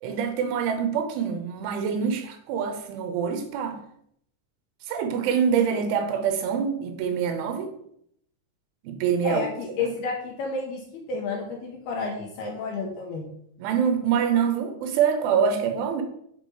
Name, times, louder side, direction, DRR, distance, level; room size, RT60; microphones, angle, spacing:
voice 1, 0.0-3.8 4.9-7.7 8.8-9.5 9.8-9.9 13.6-16.0, right 7 dB, 85° right, 6 dB, 3.4 m, -25 dB
voice 2, 9.2-13.3, left 4 dB, 70° left, 1 dB, 2.5 m, -31 dB
8.8 x 4.2 x 4.8 m, 0.71 s
omnidirectional pair, 5.4 m